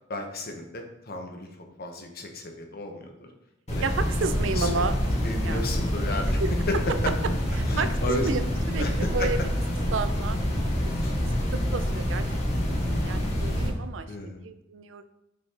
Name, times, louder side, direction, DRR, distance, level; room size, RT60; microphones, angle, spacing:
voice 1, 0.1-1.5 1.8-3.3 3.7-3.8 4.2-6.8 7.7-8.3 8.8-9.3 11.0-11.1 14.1-14.4, left 2 dB, 55° left, 3 dB, 0.9 m, -34 dB
sound 1, 3.7-13.7, equal, 35° left, 1.6 m, -27 dB
voice 2, 3.8-5.0 5.4-5.8 6.4-6.5 7.6-9.4 9.7-10.4 10.8-10.9 11.5-12.2 12.6-15.0, right 4 dB, 80° right, 11 dB, 0.5 m, -32 dB
6.9 x 5.5 x 2.9 m, 0.89 s
head